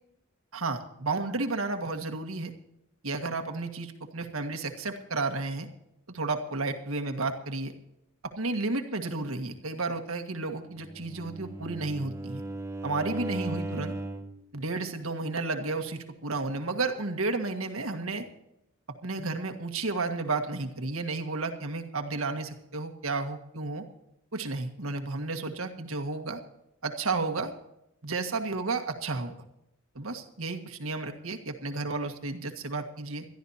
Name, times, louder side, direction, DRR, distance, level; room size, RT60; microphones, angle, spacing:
voice 1, 0.5-2.5 3.0-5.7 6.1-7.7 8.2-12.4 12.8-13.9 14.5-18.3 19.0-23.8 24.3-26.4 26.8-27.5 28.0-29.3 29.9-33.3, right 3 dB, 85° right, 5 dB, 1.8 m, -32 dB
Bowed string instrument, 10.8-14.4, right 2 dB, 15° right, 1.0 m, -37 dB
22.0 x 13.5 x 2.8 m, 0.82 s
head